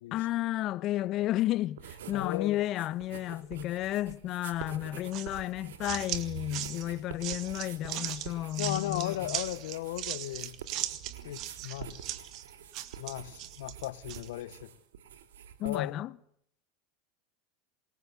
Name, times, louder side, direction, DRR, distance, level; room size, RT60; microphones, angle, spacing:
voice 1, 0.1-9.4 15.6-16.1, left 14 dB, 50° left, 1.0 m, -32 dB
sound 1, 1.8-2.4 2.7-15.8, right 8 dB, 75° right, 2.7 m, -47 dB
voice 2, 2.1-2.6 8.6-10.6 11.2-12.0 13.0-14.7 15.6-16.0, left 15 dB, 70° left, 1.1 m, -36 dB
sound 2, 5.1-14.3, right 13 dB, 50° right, 2.1 m, -38 dB
27.0 x 22.0 x 8.2 m
hypercardioid pair, 85°, 0 cm